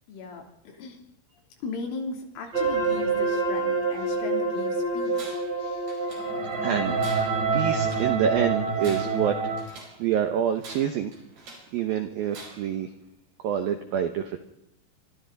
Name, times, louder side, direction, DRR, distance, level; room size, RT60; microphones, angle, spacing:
voice 1, 0.1-1.0 1.6-5.4, left 4 dB, 75° left, 2 dB, 5.7 m, -37 dB
sound 1, 2.5-9.6, right 4 dB, 25° right, 3.1 m, -26 dB
Tools, 5.1-5.6 5.9-6.6 7.0-8.1 8.7-10.0 10.6-11.8 12.3-12.8, right 3 dB, 50° right, 7.0 m, -45 dB
voice 2, 6.6-11.1 11.7-12.9 13.4-14.4, right 9 dB, 80° right, 7 dB, 2.1 m, -27 dB
25.5 x 25.0 x 4.1 m, 0.83 s
omnidirectional pair, 5.8 m